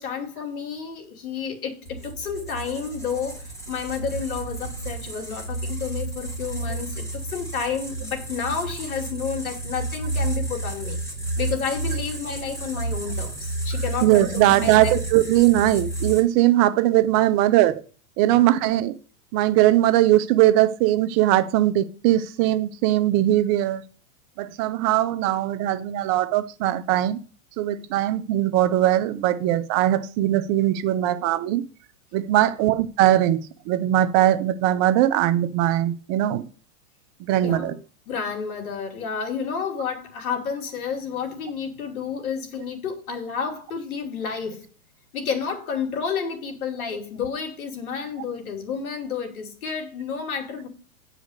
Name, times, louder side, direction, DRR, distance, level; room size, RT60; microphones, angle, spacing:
voice 1, 0.0-11.0 11.4-14.9 18.3-18.5 32.4-32.7 37.4-37.8 38.1-44.6 45.1-50.7, left 6 dB, 80° left, 2.9 m, -30 dB
sound 1, 1.8-16.2, right 2 dB, 5° left, 2.9 m, -31 dB
voice 2, 14.0-17.8 18.2-18.9 19.3-23.8 24.4-27.2 27.6-31.6 32.1-36.5 37.3-37.7, right 14 dB, 35° right, 0.8 m, -20 dB
9.4 x 5.1 x 6.4 m
hypercardioid pair, 135°, 42 cm